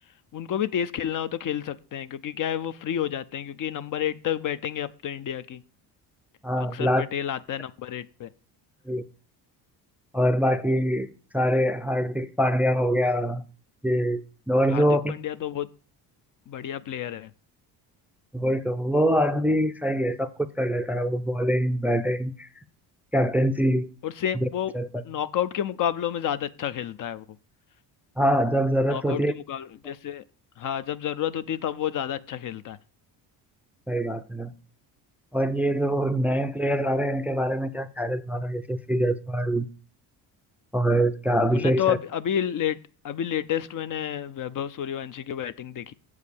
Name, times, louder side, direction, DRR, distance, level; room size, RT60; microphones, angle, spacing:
voice 1, 0.3-5.6 6.7-8.3 14.7-15.7 16.5-17.3 24.0-24.7 25.0-27.2 28.9-30.2 30.6-32.8 41.5-42.8 43.0-45.9, left 10 dB, 50° left, 0.5 m, -30 dB
voice 2, 6.4-7.0 8.9-9.0 10.1-11.1 11.3-13.4 13.8-15.1 18.3-22.5 23.1-23.9 24.4-24.5 24.7-24.9 28.2-29.3 33.9-34.5 35.3-39.7 40.7-42.0, equal, 5° right, 0.4 m, -24 dB
7.4 x 4.8 x 6.9 m
cardioid pair, 95°, 43 cm